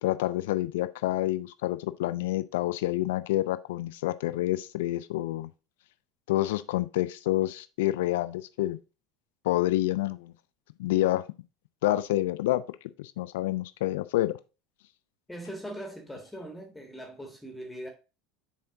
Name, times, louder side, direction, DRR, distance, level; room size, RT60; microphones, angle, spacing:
voice 1, 0.0-5.5 6.3-8.8 9.4-10.3 10.8-11.2 11.8-12.6 13.0-14.3, left 15 dB, 65° left, 0.5 m, -28 dB
voice 2, 15.3-17.9, right 1 dB, 5° left, 1.6 m, -40 dB
7.3 x 4.4 x 3.6 m
figure-of-eight pair, 70°, 0 cm